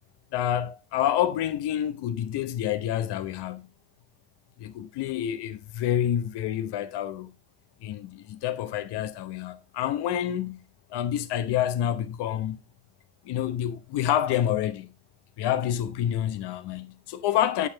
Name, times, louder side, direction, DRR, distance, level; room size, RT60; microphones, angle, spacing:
voice 1, 0.3-3.7 4.6-7.3 7.8-10.6 10.9-12.6 13.2-14.9 15.4-17.7, left 11 dB, 60° left, 1.1 m, -28 dB
8.6 x 6.9 x 2.8 m
cardioid pair, 125°, 47 cm